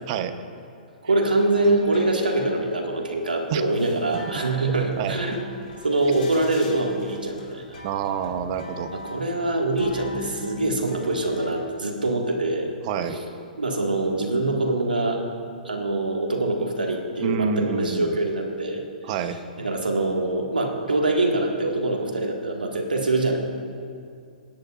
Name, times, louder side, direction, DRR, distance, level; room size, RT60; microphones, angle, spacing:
voice 1, 1.0-5.5 5.8-7.8 8.9-12.7 13.1-13.2 13.6-15.2 15.6-18.8 19.6-23.4, right 2 dB, 90° right, 1 dB, 1.9 m, -24 dB
sound 1, 1.3-11.5, left 2 dB, 75° left, 3.2 m, -42 dB
voice 2, 7.8-8.9 12.8-13.2 17.2-18.2 19.0-19.4, right 7 dB, 45° right, 10 dB, 0.9 m, -27 dB
28.0 x 10.0 x 2.5 m, 2.4 s
hypercardioid pair, 120°, 5 cm